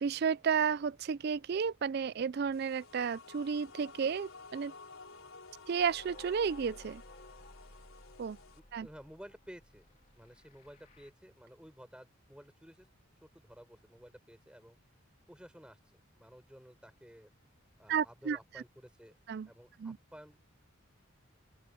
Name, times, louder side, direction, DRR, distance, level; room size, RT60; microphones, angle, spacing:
voice 1, 0.0-4.7 5.7-7.0 8.2-8.4 8.7-8.9 17.9-18.4 19.3-19.5 19.8-20.0, right 6 dB, 50° right, 0.4 m, -32 dB
sound 1, 2.5-8.6, left 4 dB, 80° left, 4.0 m, -53 dB
sound 2, 5.8-11.1, left 1 dB, 40° left, 3.3 m, -57 dB
voice 2, 8.6-9.9 10.1-12.9 13.2-14.8 15.3-17.3 17.8-19.2 19.4-20.4, equal, 5° right, 5.9 m, -54 dB
open air
head